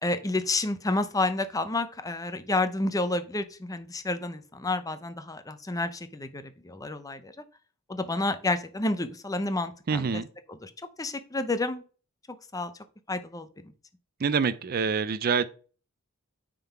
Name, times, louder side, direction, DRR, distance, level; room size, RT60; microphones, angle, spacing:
voice 1, 0.0-7.3 7.9-10.2 10.5-10.7 11.0-11.8 12.5-12.7 13.1-13.7, left 2 dB, 15° left, 0.6 m, -30 dB
voice 2, 9.9-10.3 14.2-15.5, right 5 dB, 45° right, 0.4 m, -26 dB
9.0 x 3.8 x 4.5 m
head